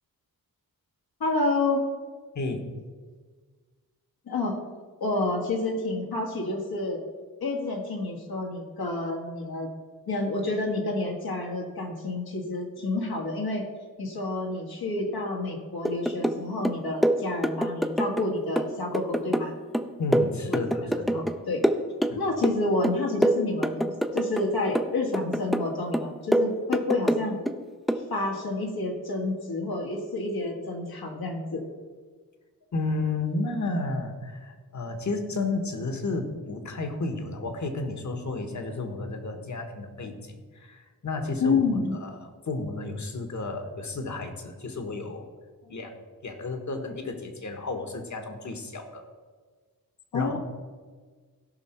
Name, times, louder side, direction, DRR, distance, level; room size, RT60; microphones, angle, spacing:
voice 1, 1.2-1.8 4.3-4.6 5.0-7.0 7.4-9.7 10.1-13.7 14.0-19.6 20.5-21.6 22.2-27.4 28.1-31.6 41.4-41.9 50.1-50.4, left 2 dB, 80° left, 0 dB, 2.0 m, -29 dB
sound 1, 15.8-16.4 16.6-18.3 18.6-21.4 21.6-22.6 22.8-24.5 24.7-25.7 25.9-27.6 27.9-28.1, right 1 dB, ahead, 0.5 m, -25 dB
voice 2, 20.0-21.2 22.1-22.2 32.7-41.6 42.0-42.2 42.5-45.3 45.7-49.0 50.1-50.4, left 3 dB, 50° left, 5 dB, 1.5 m, -32 dB
16.5 x 5.6 x 4.5 m, 1.5 s
wide cardioid pair, 95°, 36 cm